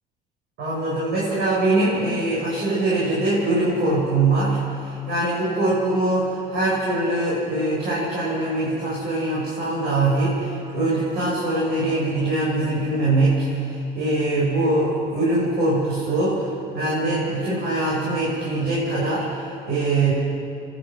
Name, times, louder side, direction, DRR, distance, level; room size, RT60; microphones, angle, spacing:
voice 1, 0.6-20.1, right 2 dB, 70° right, -7 dB, 7.0 m, -23 dB
29.5 x 12.5 x 7.8 m, 2.5 s
cardioid pair, 110°, 17 cm